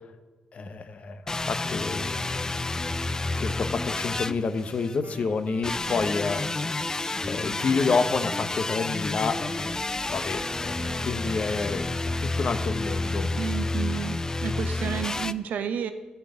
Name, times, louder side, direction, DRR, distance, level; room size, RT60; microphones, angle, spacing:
voice 1, 0.5-2.2 3.4-6.4 7.3-9.8 10.1-11.9 12.2-13.3, left 4 dB, 60° left, 10 dB, 0.9 m, -29 dB
sound 1, 1.3-5.0 5.6-15.3, left 2 dB, 25° left, 0.4 m, -30 dB
Wind instrument woodwind instrument, 5.0-9.2 9.5-12.4, right 3 dB, 60° right, 1.2 m, -46 dB
voice 2, 13.4-15.9, right 8 dB, 85° right, 10 dB, 0.7 m, -31 dB
12.0 x 4.5 x 8.0 m, 1.3 s
cardioid pair, 70°, 3 cm